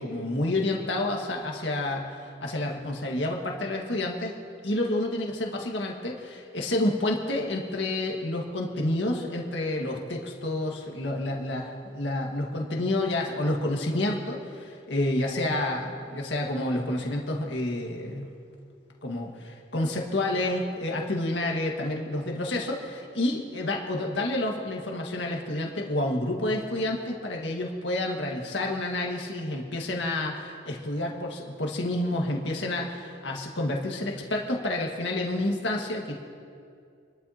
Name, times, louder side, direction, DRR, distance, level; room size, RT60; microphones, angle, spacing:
voice 1, 0.0-4.3 4.6-18.3 19.0-36.1, left 1 dB, 75° left, 0 dB, 1.8 m, -29 dB
28.0 x 12.5 x 2.9 m, 2.4 s
head